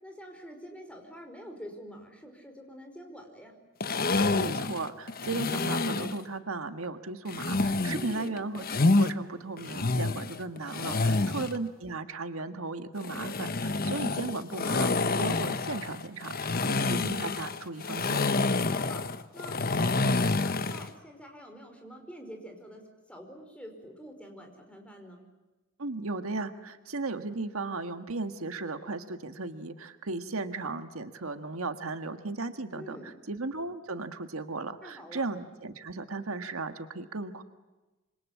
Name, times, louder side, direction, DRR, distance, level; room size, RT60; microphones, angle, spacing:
voice 1, 0.0-3.6 7.9-8.4 10.9-11.4 18.5-19.1 19.3-25.2 32.7-33.2 34.8-35.3, equal, 5° left, 4 dB, 5.1 m, -46 dB
sound 1, 3.8-6.2 7.3-9.1 9.6-11.6 13.0-20.9, left 3 dB, 45° left, 1.1 m, -28 dB
voice 2, 4.3-18.2 25.8-33.0 33.3-37.4, right 3 dB, 80° right, 8 dB, 1.6 m, -36 dB
27.0 x 25.5 x 8.6 m, 1.1 s
head